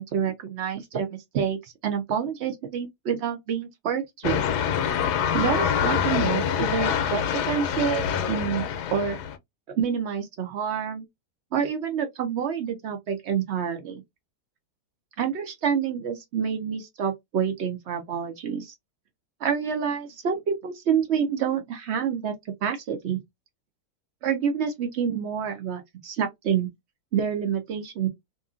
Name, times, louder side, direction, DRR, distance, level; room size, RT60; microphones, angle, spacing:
voice 1, 0.0-4.4 5.3-9.2 9.8-11.0 11.5-14.0 15.2-18.7 19.4-22.4 22.6-23.2 24.2-26.7 27.1-28.1, right 7 dB, 75° right, 0.6 m, -28 dB
sound 1, 4.2-9.4, left 8 dB, 75° left, 1.1 m, -25 dB
2.8 x 2.5 x 2.4 m
omnidirectional pair, 1.8 m